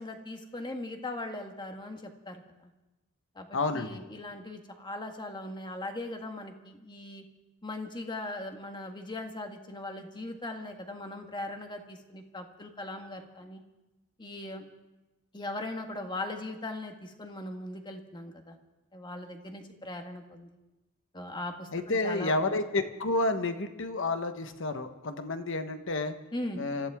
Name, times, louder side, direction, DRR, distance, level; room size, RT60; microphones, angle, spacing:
voice 1, 0.0-2.7 3.3-7.2 7.6-13.6 14.2-14.6 15.3-18.6 18.9-20.5 21.1-22.3 26.3-26.6, left 2 dB, 20° left, 4 dB, 1.6 m, -39 dB
voice 2, 3.5-4.0 21.7-26.1 26.6-26.9, left 2 dB, 65° left, 8 dB, 1.2 m, -30 dB
25.5 x 15.0 x 3.6 m, 1.0 s
head